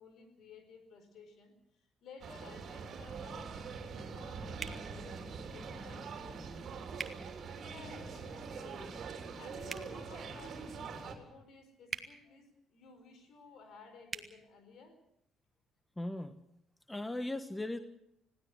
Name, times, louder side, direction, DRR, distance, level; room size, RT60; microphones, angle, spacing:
voice 1, 0.0-1.5 2.0-7.1 7.6-9.1 9.4-15.0, left 4 dB, 60° left, 8 dB, 4.6 m, -55 dB
sound 1, 2.2-11.2, right 5 dB, 50° right, 3.4 m, -44 dB
sound 2, 4.6-4.8 7.0-7.2 9.6-9.9 11.9-12.1 14.1-14.3, right 4 dB, 35° right, 1.9 m, -40 dB
voice 2, 16.0-16.4 16.9-17.8, left 1 dB, 10° left, 11 dB, 1.3 m, -38 dB
20.5 x 16.5 x 8.0 m, 0.78 s
hypercardioid pair, 50°, 0 cm